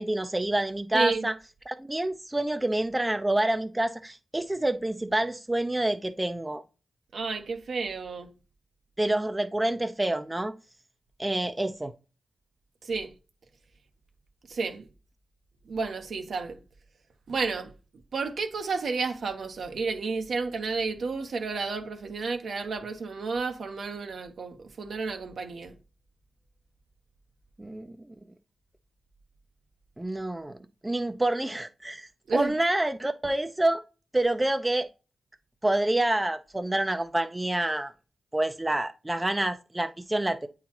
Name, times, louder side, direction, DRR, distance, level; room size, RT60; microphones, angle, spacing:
voice 1, 0.0-1.3 1.7-6.6 9.0-10.5 11.2-11.9 27.6-28.1 30.0-30.6 30.8-33.8 34.1-34.9 35.6-37.9 38.3-40.5, right 1 dB, 15° right, 0.6 m, -27 dB
voice 2, 0.9-1.3 7.1-8.3 12.8-13.1 14.5-14.9 15.7-16.6 17.3-17.7 18.1-25.7 32.3-32.5, right 4 dB, 70° right, 1.0 m, -31 dB
8.3 x 3.9 x 3.0 m
cardioid pair, 50°, 0 cm